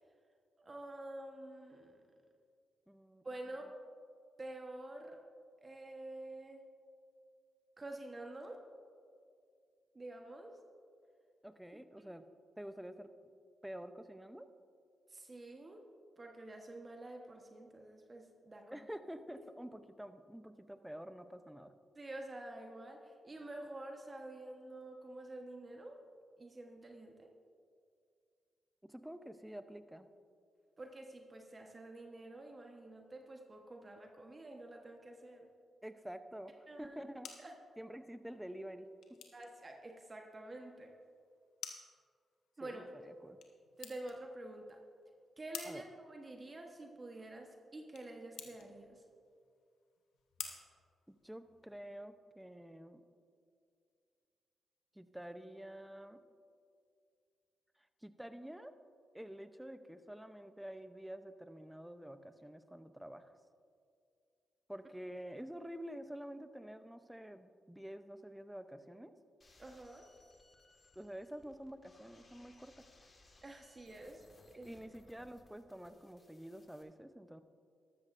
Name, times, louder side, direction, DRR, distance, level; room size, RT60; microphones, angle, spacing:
voice 1, 0.6-2.0 3.2-3.7 4.4-5.2 5.6-6.6 7.8-8.7 9.9-10.6 12.0-12.1 15.1-15.8 16.2-18.8 19.3-19.4 21.9-26.0 26.4-27.3 30.8-35.5 36.7-37.0 37.4-37.5 39.3-40.9 42.6-42.9 43.8-44.8 45.4-49.0 69.6-70.1 73.4-74.7, right 1 dB, 35° right, 2 dB, 1.2 m, -48 dB
voice 2, 2.9-3.2 11.4-12.3 12.6-13.1 13.6-14.5 18.7-21.7 28.8-30.1 35.8-37.3 37.8-39.2 42.6-43.4 45.6-45.8 51.1-53.0 54.9-56.2 58.0-58.8 59.1-63.3 64.7-69.2 71.0-73.1 74.5-77.4, equal, 5° right, 10 dB, 0.7 m, -48 dB
sound 1, 36.8-51.7, left 7 dB, 80° left, 1.0 m, -54 dB
sound 2, 69.4-76.8, left 2 dB, 45° left, 1.7 m, -65 dB
13.0 x 13.0 x 2.6 m, 2.3 s
supercardioid pair, 50°, 0 cm